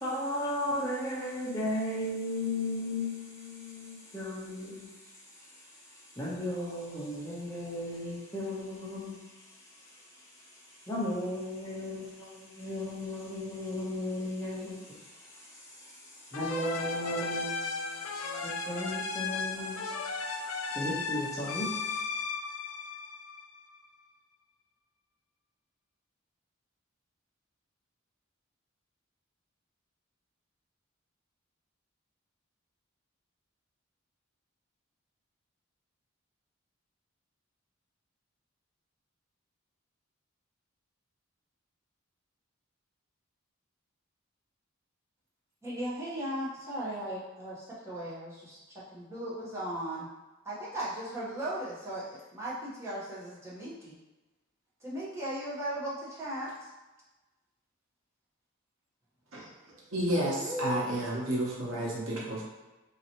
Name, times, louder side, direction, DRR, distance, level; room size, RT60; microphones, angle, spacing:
voice 1, 0.0-4.9 6.2-9.2 10.9-14.8 16.3-19.8 20.3-20.4 20.7-21.7, left 1 dB, 15° left, -8 dB, 1.0 m, -35 dB
sound 1, 16.3-23.8, left 4 dB, 75° left, 0.4 m, -35 dB
voice 2, 45.6-50.1 50.4-54.0 54.8-56.7 60.1-60.8 61.1-61.4, right 1 dB, 15° right, -8 dB, 1.1 m, -37 dB
voice 3, 59.9-62.4, right 1 dB, 70° right, -4 dB, 1.1 m, -31 dB
3.9 x 3.0 x 3.0 m, 1.1 s
head